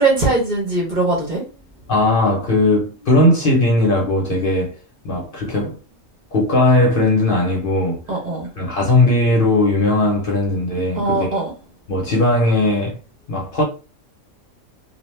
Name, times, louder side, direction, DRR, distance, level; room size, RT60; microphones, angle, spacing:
voice 1, 0.0-1.4 8.1-8.5 11.0-11.5, right 3 dB, 45° right, 0.8 m, -20 dB
voice 2, 1.9-4.8 5.0-5.7 6.3-8.0 8.6-11.4 11.9-13.0 13.3-13.6, left 2 dB, 50° left, 0.8 m, -18 dB
2.4 x 2.2 x 3.1 m
omnidirectional pair, 1.3 m